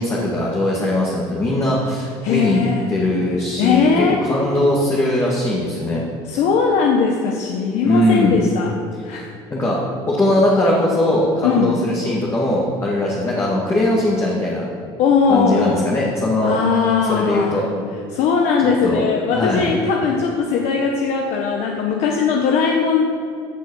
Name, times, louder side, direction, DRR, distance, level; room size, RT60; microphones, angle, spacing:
voice 1, 0.0-2.6 2.9-6.0 7.8-8.4 9.5-14.7 15.3-16.6 17.1-17.7 18.8-19.0 19.3-19.7, left 1 dB, 20° left, -5 dB, 2.3 m, -20 dB
voice 2, 2.2-2.9 3.6-4.2 6.3-8.7 9.0-9.3 11.4-11.8 15.0-15.9 16.4-17.6 18.1-23.0, left 5 dB, 65° left, 1 dB, 1.3 m, -19 dB
16.0 x 6.4 x 6.5 m, 2.5 s
cardioid pair, 130°, 13 cm